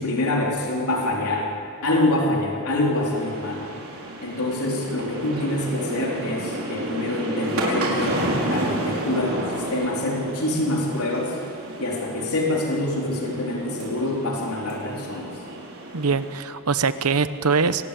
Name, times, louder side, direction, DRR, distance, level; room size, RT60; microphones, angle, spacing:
voice 1, 0.0-1.5 1.8-3.6 4.2-11.4 11.8-15.3, left 1 dB, 80° left, -2 dB, 3.9 m, -25 dB
sound 1, 2.9-16.4, right 1 dB, 70° right, 5.1 m, -31 dB
voice 2, 15.9-17.9, right 5 dB, 85° right, 12 dB, 1.0 m, -23 dB
26.0 x 19.5 x 8.5 m, 2.7 s
head